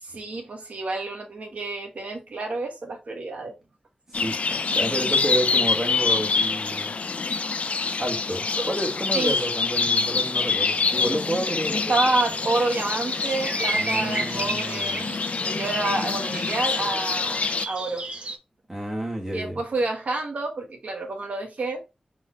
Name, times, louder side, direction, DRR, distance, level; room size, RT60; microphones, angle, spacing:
voice 1, 0.0-3.6 4.5-4.6 8.6-8.7 9.1-9.4 11.7-15.1 15.4-18.1 19.3-21.8, right 2 dB, 75° right, 1.2 m, -29 dB
sound 1, 4.1-17.7, left 4 dB, 65° left, 0.4 m, -26 dB
voice 2, 4.7-6.9 8.0-11.9 13.8-15.1 18.7-19.6, right 1 dB, 20° right, 1.5 m, -30 dB
sound 2, 11.8-18.4, right 2 dB, 50° right, 0.7 m, -34 dB
4.1 x 3.1 x 3.7 m
wide cardioid pair, 105°, 2 cm